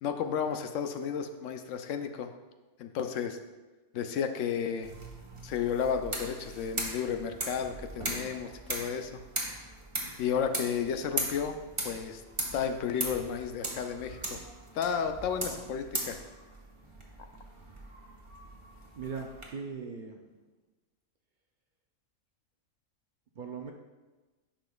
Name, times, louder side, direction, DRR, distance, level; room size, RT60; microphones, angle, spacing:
voice 1, 0.0-2.3 2.8-3.4 3.9-4.9 5.4-9.2 10.2-11.6 11.8-12.2 12.5-14.4 14.7-16.2, left 7 dB, 80° left, 7 dB, 0.9 m, -32 dB
sound 1, 4.8-19.5, right 1 dB, 25° right, 0.9 m, -39 dB
voice 2, 19.0-20.2 23.4-23.7, right 5 dB, 55° right, 2 dB, 0.5 m, -39 dB
10.5 x 5.1 x 2.3 m, 1.2 s
omnidirectional pair, 1.3 m